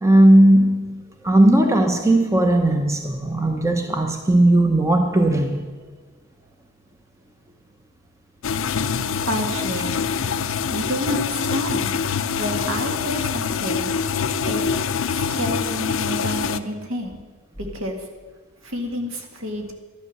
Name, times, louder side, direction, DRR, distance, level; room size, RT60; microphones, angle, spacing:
voice 1, 0.0-5.6, right 1 dB, 15° right, 4 dB, 0.7 m, -17 dB
sound 1, 8.4-16.6, left 6 dB, 65° left, 0.5 m, -25 dB
voice 2, 8.9-10.0 10.7-11.9 12.3-13.9 14.4-14.6 15.1-17.2 17.6-18.0 18.6-19.7, equal, 70° right, 3 dB, 2.0 m, -29 dB
12.5 x 10.5 x 6.6 m, 1.4 s
head